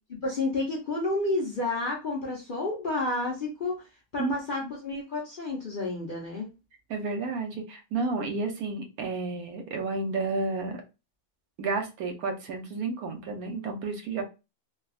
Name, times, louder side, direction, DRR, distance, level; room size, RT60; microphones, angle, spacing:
voice 1, 0.2-3.8 4.1-6.5, left 2 dB, 50° left, -2 dB, 0.7 m, -30 dB
voice 2, 6.9-10.8 11.6-14.2, right 3 dB, 75° right, 4 dB, 1.1 m, -31 dB
3.3 x 2.3 x 2.3 m, 0.28 s
omnidirectional pair, 1.6 m